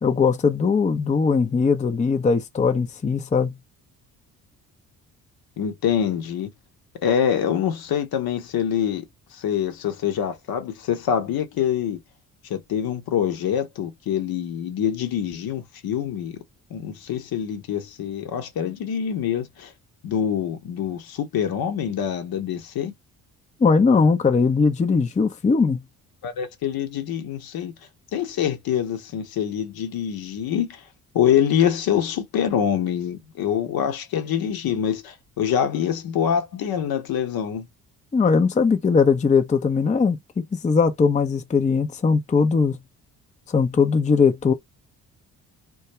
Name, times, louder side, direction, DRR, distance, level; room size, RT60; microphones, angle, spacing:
voice 1, 0.0-3.5 23.6-25.8 38.1-42.8 43.5-44.5, left 5 dB, 20° left, 0.5 m, -20 dB
voice 2, 5.6-6.5 7.0-9.0 9.3-12.0 12.5-16.4 16.7-19.7 20.0-22.9 26.2-27.7 28.1-30.8 31.1-37.7, left 9 dB, 60° left, 0.8 m, -25 dB
2.3 x 2.2 x 2.9 m
hypercardioid pair, 50°, 40 cm